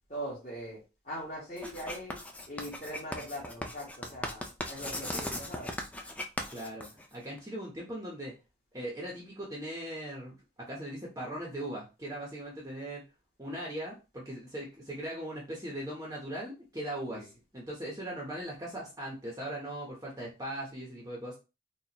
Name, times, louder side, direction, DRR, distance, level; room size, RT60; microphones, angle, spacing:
voice 1, 0.1-5.7 17.1-17.2, equal, 40° left, -9 dB, 1.7 m, -41 dB
Writing, 1.6-7.4, left 1 dB, 10° left, 0.4 m, -38 dB
voice 2, 6.5-8.3 8.7-10.4 10.7-13.0 13.4-17.2 17.5-21.4, right 1 dB, 15° right, -4 dB, 0.8 m, -39 dB
4.1 x 2.4 x 2.9 m, 0.29 s
head